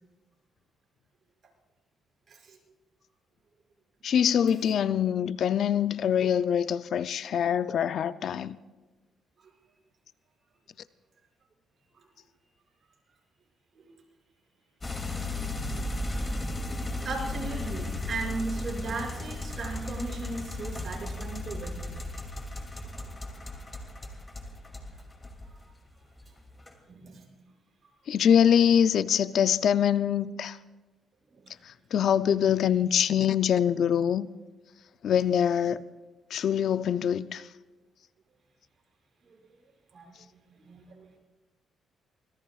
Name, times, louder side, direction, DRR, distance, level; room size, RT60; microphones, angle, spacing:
voice 1, 2.3-2.6 9.4-9.5 11.9-12.0 13.7-14.0 17.0-22.0 25.6-25.7 26.9-27.3 27.8-27.9 31.3-31.5 39.2-39.4 39.9-40.2 40.6-41.2, right 3 dB, 45° right, 6.2 m, -37 dB
voice 2, 4.0-8.6 28.1-30.6 31.6-34.3 35.0-35.8 36.3-37.5, left 8 dB, 65° left, 0.5 m, -24 dB
sound 1, 14.8-25.7 26.1-26.7, left 1 dB, 20° left, 2.7 m, -35 dB
25.5 x 20.5 x 2.4 m
cardioid pair, 90°, 0 cm